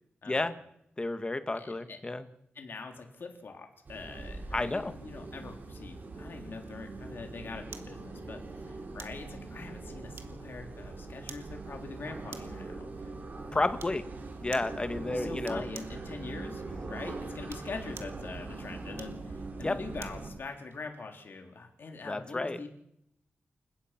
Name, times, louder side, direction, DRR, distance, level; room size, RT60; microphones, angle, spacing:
voice 1, 1.0-2.2 4.5-4.9 13.5-14.0 14.4-15.6 19.6-19.8 22.1-22.6, left 2 dB, 25° left, 10 dB, 1.5 m, -31 dB
voice 2, 1.5-2.0 2.6-8.4 8.7-12.9 13.5-13.7 14.9-22.7, left 4 dB, 60° left, 3 dB, 3.6 m, -43 dB
sound 1, 3.8-20.3, right 3 dB, 50° right, 5.5 m, -42 dB
sound 2, 7.7-8.0 9.0-9.2 10.2-10.6 11.3-11.5 12.3-12.6 13.8-14.0 14.5-14.8 15.4-16.0 17.3-18.2 18.9-20.2 20.7-20.8, right 6 dB, 85° right, 1.8 m, -48 dB
28.5 x 16.5 x 5.9 m, 0.76 s
wide cardioid pair, 125°, 4 cm